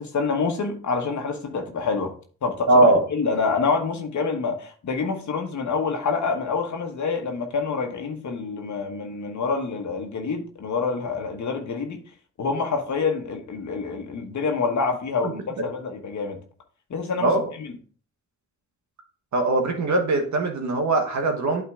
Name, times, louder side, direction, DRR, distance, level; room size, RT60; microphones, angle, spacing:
voice 1, 0.0-2.2 2.4-12.0 12.4-16.4 16.9-17.3 17.6-17.7, left 4 dB, 70° left, 1.3 m, -27 dB
voice 2, 2.7-3.0 15.2-15.3 17.2-17.4 19.3-21.6, right 2 dB, 70° right, 1.5 m, -20 dB
8.5 x 3.9 x 3.6 m
supercardioid pair, 45°, 30 cm